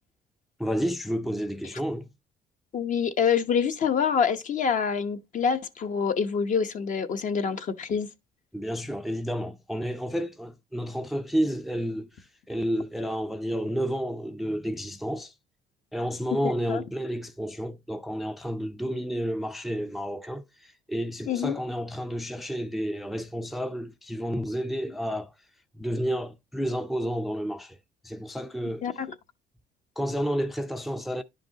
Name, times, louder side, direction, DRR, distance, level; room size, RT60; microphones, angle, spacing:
voice 1, 0.6-2.1 8.5-15.3 15.9-25.3 25.8-27.8 28.0-28.8 30.0-31.2, equal, ahead, 0.4 m, -31 dB
voice 2, 2.7-8.1 16.4-16.8 21.3-21.6 28.8-29.1, left 6 dB, 50° left, 0.9 m, -26 dB
10.5 x 5.2 x 2.8 m
cardioid pair, 110°, 17 cm